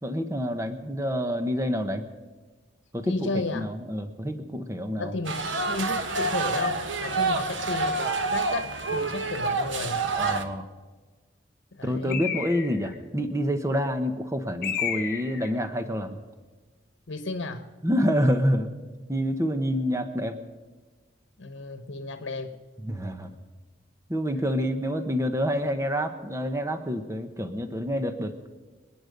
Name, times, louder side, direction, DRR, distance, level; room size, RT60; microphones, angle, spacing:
voice 1, 0.0-2.0 2.9-5.1 10.2-10.6 11.8-16.2 17.8-18.7 19.1-20.4 22.8-23.3 24.1-28.5, equal, 15° right, 8 dB, 1.0 m, -27 dB
voice 2, 3.0-3.7 5.0-10.0 11.7-12.2 17.1-17.7 21.4-22.6, left 2 dB, 80° left, 8 dB, 1.1 m, -33 dB
sound 1, 5.2-10.4, right 3 dB, 80° right, 1.3 m, -27 dB
Bird, 12.1-12.9 14.6-15.5, left 8 dB, 50° left, 3.2 m, -31 dB
28.0 x 9.8 x 5.3 m, 1.3 s
head